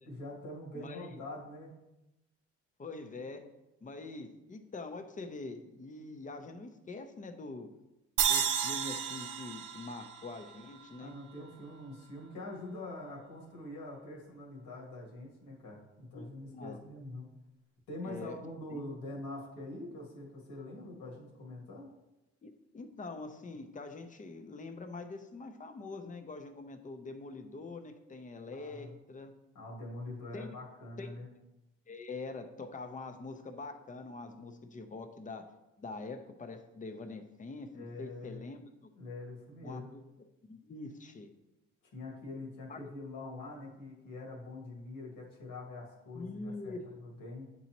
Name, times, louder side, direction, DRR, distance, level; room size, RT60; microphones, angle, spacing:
voice 1, 0.1-1.7 11.0-17.3 17.9-21.9 28.5-29.0 29.5-31.3 37.8-38.4 39.0-39.9 41.9-46.7 47.0-47.5, left 2 dB, 85° left, -2 dB, 1.9 m, -44 dB
voice 2, 0.7-1.2 2.8-3.5 3.8-7.7 8.3-11.1 16.1-16.8 18.0-18.4 18.7-18.8 22.4-29.3 30.3-30.6 31.0-31.1 31.9-35.5 35.8-38.7 39.6-40.0 40.4-41.3 42.7-42.8 46.1-46.9, left 3 dB, 25° left, 7 dB, 0.7 m, -44 dB
sound 1, 8.2-11.4, right 8 dB, 85° right, 0.6 m, -33 dB
8.3 x 4.1 x 2.9 m, 0.95 s
cardioid pair, 90°, 30 cm